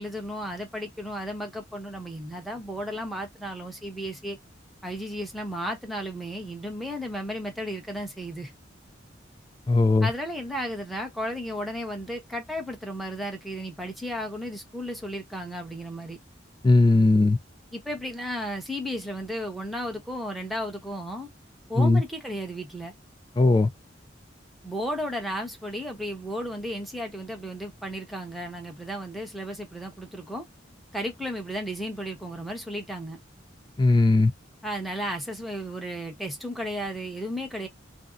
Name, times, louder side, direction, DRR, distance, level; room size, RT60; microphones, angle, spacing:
voice 1, 0.0-4.4 4.8-8.5 10.0-16.2 17.7-21.3 21.7-22.9 24.6-30.5 30.9-33.2 34.6-37.7, equal, ahead, 0.8 m, -34 dB
voice 2, 9.7-10.1 16.6-17.4 21.8-22.0 23.4-23.7 33.8-34.3, left 2 dB, 25° left, 0.3 m, -18 dB
2.6 x 2.0 x 3.5 m
head